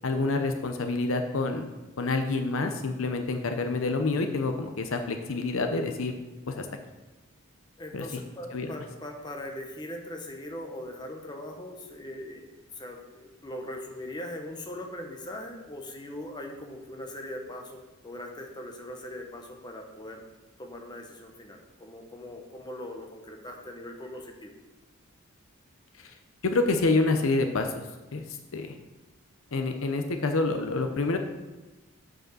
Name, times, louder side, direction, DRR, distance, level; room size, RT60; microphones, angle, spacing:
voice 1, 0.0-1.7 2.0-6.1 6.5-6.7 7.9-8.1 8.5-8.7 26.0-26.1 26.4-27.8 28.1-28.2 28.5-28.7 29.5-31.2, left 3 dB, 65° left, 6 dB, 0.7 m, -27 dB
voice 2, 7.8-20.2 20.6-24.5, left 1 dB, 20° left, 2 dB, 1.0 m, -40 dB
7.6 x 4.9 x 6.3 m, 1.1 s
head